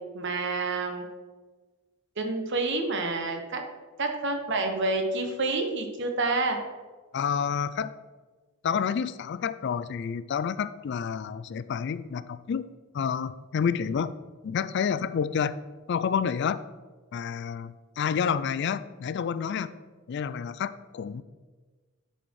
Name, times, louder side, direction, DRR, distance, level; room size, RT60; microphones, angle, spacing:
voice 1, 0.1-1.0 2.2-3.6 4.0-6.6, right 3 dB, 60° right, 4 dB, 1.2 m, -28 dB
voice 2, 7.1-7.9 8.6-12.7 12.9-14.1 14.4-15.6 15.9-16.6 17.1-19.7 20.1-21.2, left 7 dB, 55° left, 15 dB, 0.3 m, -29 dB
10.5 x 4.4 x 4.7 m, 1.3 s
head